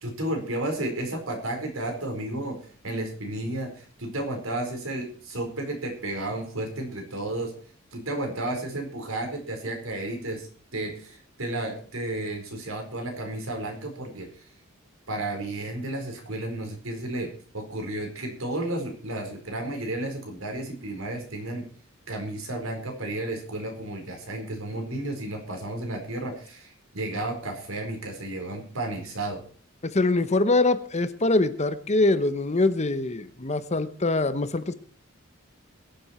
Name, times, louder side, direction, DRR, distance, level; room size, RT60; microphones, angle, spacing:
voice 1, 0.0-2.6 2.8-7.5 7.9-14.4 15.1-17.3 17.5-21.6 22.1-29.4, right 1 dB, 75° right, 3 dB, 4.4 m, -32 dB
voice 2, 29.8-34.7, left 2 dB, 35° left, 12 dB, 0.9 m, -23 dB
22.0 x 7.8 x 4.4 m, 0.43 s
head